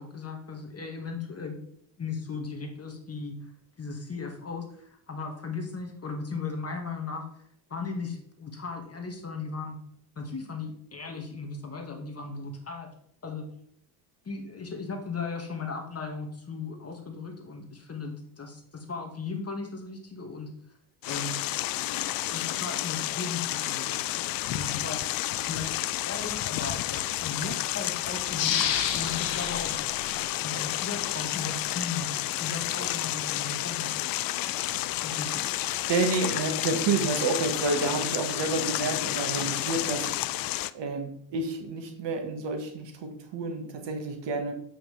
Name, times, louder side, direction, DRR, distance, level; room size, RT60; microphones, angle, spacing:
voice 1, 0.0-1.6 2.0-3.4 3.8-7.3 7.7-9.8 10.2-12.9 13.2-13.5 14.3-20.5 21.1-21.4 22.3-23.9 24.3-25.0 25.4-25.8 26.0-28.6 28.9-29.8 30.4-32.1 32.4-34.0 35.0-35.4, left 4 dB, 30° left, 3 dB, 2.0 m, -37 dB
sound 1, 21.0-40.7, left 15 dB, 45° left, 0.5 m, -31 dB
sound 2, 28.3-31.0 31.5-31.6, left 8 dB, 60° left, 1.3 m, -31 dB
voice 2, 35.9-40.1 40.7-44.5, right 3 dB, 55° right, 5 dB, 1.8 m, -29 dB
7.8 x 6.0 x 3.4 m, 0.67 s
hypercardioid pair, 60°, 49 cm